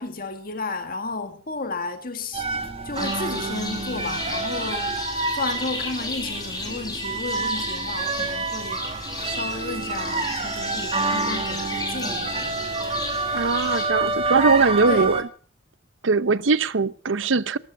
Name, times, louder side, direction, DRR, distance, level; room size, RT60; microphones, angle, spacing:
voice 1, 0.0-2.5 2.8-5.0 5.3-8.8 9.3-12.7 14.9-15.1, left 3 dB, 45° left, 1.8 m, -32 dB
sound 1, 2.3-15.2, right 3 dB, 30° right, 1.9 m, -28 dB
sound 2, 2.9-13.9, left 2 dB, 20° left, 6.1 m, -34 dB
voice 2, 13.3-15.3 16.0-17.6, right 4 dB, 75° right, 0.8 m, -21 dB
19.0 x 13.5 x 5.3 m
head